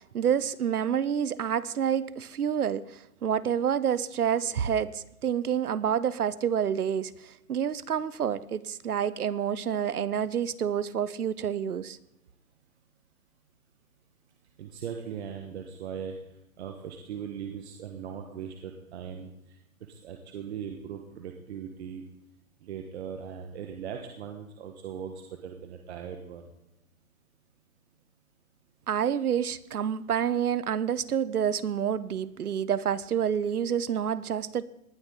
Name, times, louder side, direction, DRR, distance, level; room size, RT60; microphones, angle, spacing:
voice 1, 0.1-12.0 28.9-34.6, right 8 dB, 90° right, 0.9 m, -28 dB
voice 2, 14.6-16.2 16.6-19.6 19.9-22.0 22.6-26.5, right 8 dB, 50° right, 1.5 m, -39 dB
19.0 x 12.0 x 4.0 m
hypercardioid pair, 145°, 43 cm